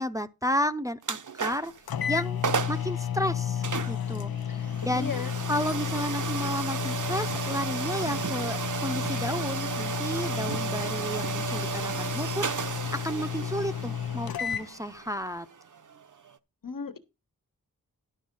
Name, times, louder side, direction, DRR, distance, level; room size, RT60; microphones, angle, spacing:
voice 1, 0.0-1.7 2.1-2.4 2.7-5.1 5.5-15.5, equal, 10° right, 0.6 m, -32 dB
sound 1, 1.0-1.8 2.2-2.3 2.4-2.9 3.6-16.4, right 6 dB, 55° right, 0.8 m, -34 dB
sound 2, 1.5-1.6 1.9-14.7, left 9 dB, 90° left, 0.6 m, -32 dB
voice 2, 4.5-5.3 16.6-17.0, left 5 dB, 65° left, 1.5 m, -36 dB
11.5 x 5.8 x 5.4 m
wide cardioid pair, 75°, 35 cm